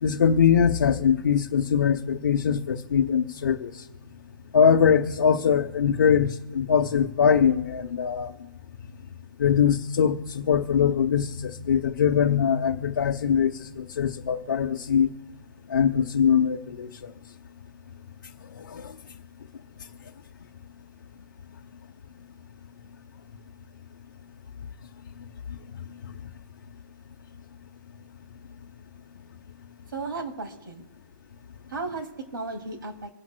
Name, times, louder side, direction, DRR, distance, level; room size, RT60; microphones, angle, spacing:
voice 1, 0.0-3.8 4.5-8.3 9.4-15.1 15.7-17.1 18.5-19.0, left 7 dB, 55° left, 0.8 m, -22 dB
voice 2, 29.9-30.8 31.7-33.1, right 3 dB, 75° right, 2.4 m, -34 dB
26.0 x 10.5 x 2.2 m
hypercardioid pair, 170°, 11 cm